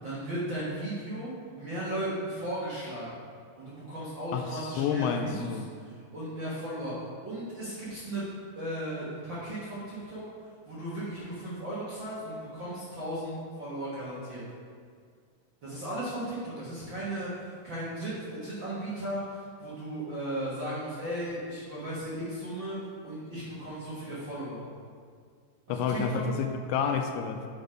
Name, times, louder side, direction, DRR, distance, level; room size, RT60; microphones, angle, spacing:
voice 1, 0.0-3.2 3.6-6.9 7.2-8.3 8.6-10.2 10.7-14.4 15.6-24.6 25.7-26.2, right 1 dB, 50° right, -9 dB, 1.4 m, -36 dB
voice 2, 4.3-5.7 25.7-27.5, left 6 dB, 80° left, 5 dB, 2.1 m, -30 dB
8.3 x 4.5 x 5.1 m, 2.1 s
omnidirectional pair, 4.0 m